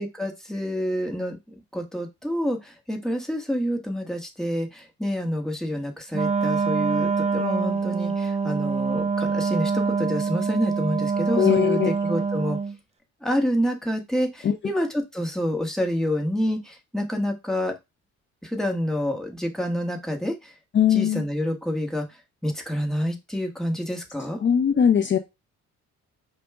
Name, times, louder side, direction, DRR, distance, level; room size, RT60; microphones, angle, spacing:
voice 1, 0.0-1.4 1.7-12.6 13.2-17.7 18.4-20.5 20.9-22.1 22.4-24.4, equal, ahead, 3 dB, 1.1 m, -28 dB
Wind instrument woodwind instrument, 6.1-12.8, right 5 dB, 20° right, 0.6 m, -25 dB
voice 2, 11.4-11.9 14.4-14.5 20.7-21.2 24.4-25.2, left 8 dB, 40° left, 6 dB, 0.6 m, -20 dB
5.1 x 2.2 x 3.4 m, 0.22 s
cardioid pair, 90°, 30 cm